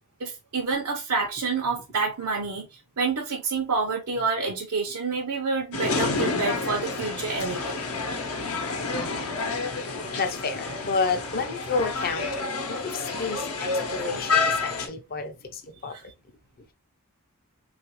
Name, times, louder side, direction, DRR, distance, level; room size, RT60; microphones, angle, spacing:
voice 1, 0.2-2.7 3.0-7.8 15.9-16.0, right 4 dB, 90° right, 0.6 m, -28 dB
sound 1, 5.7-14.9, left 4 dB, 70° left, 0.8 m, -29 dB
voice 2, 9.7-16.0, left 4 dB, 40° left, 0.5 m, -31 dB
3.1 x 2.4 x 2.9 m
head